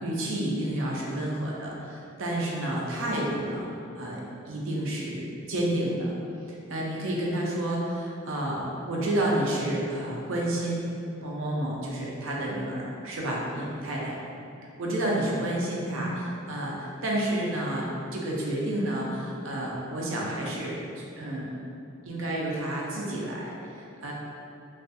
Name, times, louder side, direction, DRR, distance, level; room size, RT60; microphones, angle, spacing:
voice 1, 0.0-3.7 3.9-6.1 6.5-10.8 11.2-14.2 14.8-20.8 21.2-21.5 22.1-24.1, right 1 dB, 65° right, -3 dB, 0.5 m, -30 dB
2.4 x 2.3 x 2.6 m, 2.6 s
head